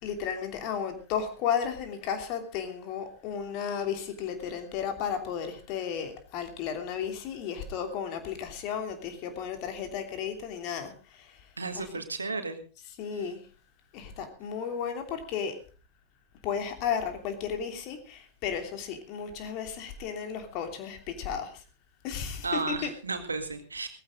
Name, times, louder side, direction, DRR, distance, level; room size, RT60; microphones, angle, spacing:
voice 1, 0.0-11.9 12.8-13.4 13.9-15.5 16.4-21.6 22.0-22.9, left 7 dB, 40° left, 6 dB, 3.0 m, -34 dB
voice 2, 11.6-12.6 22.4-23.9, right 3 dB, 75° right, 7 dB, 2.0 m, -33 dB
18.0 x 15.0 x 3.7 m, 0.36 s
figure-of-eight pair, 90°, 0 cm